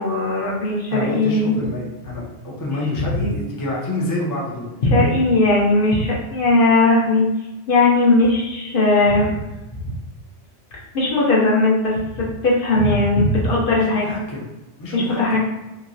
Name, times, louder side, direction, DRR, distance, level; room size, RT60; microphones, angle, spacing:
voice 1, 0.0-1.5 4.8-7.2 7.7-9.4 10.9-14.1 14.9-15.4, left 2 dB, 55° left, -4 dB, 0.7 m, -18 dB
voice 2, 0.9-4.7 13.8-14.4 14.8-15.2, left 2 dB, 30° left, -4 dB, 0.4 m, -27 dB
2.9 x 2.8 x 2.6 m, 1.0 s
omnidirectional pair, 1.2 m